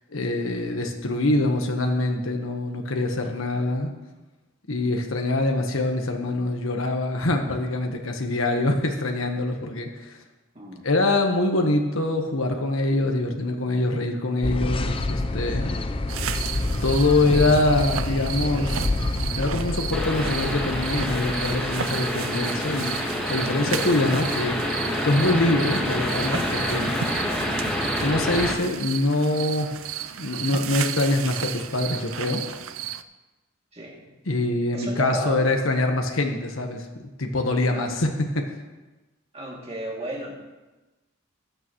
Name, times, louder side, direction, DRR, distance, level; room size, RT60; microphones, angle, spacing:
voice 1, 0.1-3.9 4.7-10.2 10.8-15.7 16.8-18.9 19.3-23.0 23.3-24.6 25.0-26.9 28.0-29.7 30.2-32.4 34.3-38.5, left 2 dB, 85° left, 3 dB, 1.3 m, -24 dB
voice 2, 10.5-10.9 33.7-34.1 34.7-35.5 37.7-38.0 39.3-40.3, right 1 dB, 30° right, -3 dB, 2.6 m, -33 dB
sound 1, 14.4-21.7, left 2 dB, 25° left, 0.6 m, -28 dB
sound 2, 16.1-33.0, right 9 dB, 85° right, 0.5 m, -34 dB
sound 3, 19.9-28.5, left 1 dB, 5° left, 1.6 m, -27 dB
15.0 x 11.0 x 3.1 m, 1.1 s
head